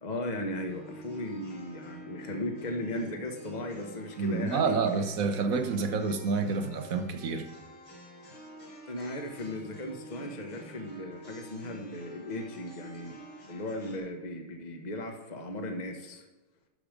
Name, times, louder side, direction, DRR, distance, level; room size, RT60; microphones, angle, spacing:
voice 1, 0.0-5.0 8.9-13.2 13.5-16.2, left 1 dB, 25° left, 1.3 m, -37 dB
sound 1, 0.7-14.0, equal, 90° left, 4.6 m, -48 dB
voice 2, 4.2-7.5, right 4 dB, 50° right, 1.1 m, -28 dB
13.0 x 6.1 x 5.1 m
omnidirectional pair, 2.4 m